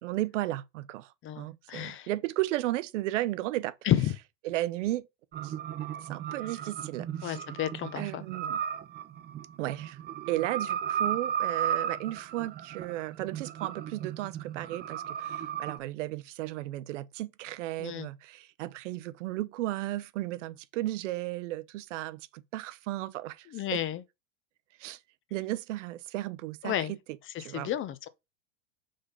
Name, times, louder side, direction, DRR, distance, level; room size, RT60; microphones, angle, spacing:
voice 1, 0.0-3.7 4.4-5.1 5.4-5.5 6.0-7.4 7.9-8.6 9.6-10.0 10.3-23.5 23.7-23.8 24.8-25.0 25.3-27.0 27.4-27.7, right 16 dB, 65° right, 0.8 m, -34 dB
voice 2, 1.2-2.1 3.8-4.1 7.2-8.2 17.8-18.1 23.5-24.0 26.6-26.9 27.5-28.1, left 11 dB, 30° left, 0.7 m, -31 dB
sound 1, 5.3-15.8, right 9 dB, 25° right, 0.8 m, -35 dB
5.1 x 3.7 x 5.2 m
hypercardioid pair, 100°, 39 cm